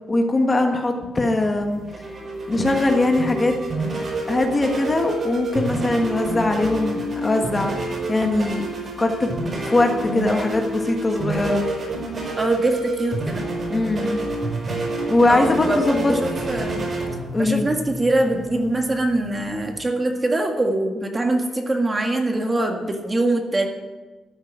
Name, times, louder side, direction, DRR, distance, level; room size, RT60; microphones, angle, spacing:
voice 1, 0.1-1.8 2.5-3.5 4.3-8.6 9.0-9.3 9.7-11.6 13.7-14.2 15.1-16.1 17.3-17.7, left 2 dB, 20° left, 3 dB, 1.5 m, -21 dB
sound 1, 1.5-19.8, right 2 dB, 35° right, 5.3 m, -28 dB
voice 2, 12.4-13.4 15.3-16.9 17.4-23.7, right 2 dB, 20° right, 3 dB, 1.9 m, -23 dB
13.5 x 8.1 x 9.3 m, 1.2 s
cardioid pair, 135°, 0 cm